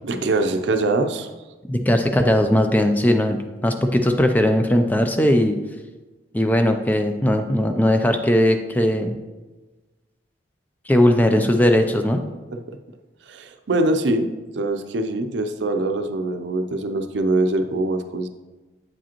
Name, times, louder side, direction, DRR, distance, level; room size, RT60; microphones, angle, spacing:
voice 1, 0.0-1.3 12.7-12.8 13.3-14.3 14.5-18.3, right 2 dB, 75° right, 7 dB, 0.5 m, -23 dB
voice 2, 1.7-5.6 6.3-9.2 10.9-12.2, left 1 dB, 10° left, 6 dB, 0.3 m, -19 dB
7.7 x 5.0 x 2.9 m, 1.2 s
head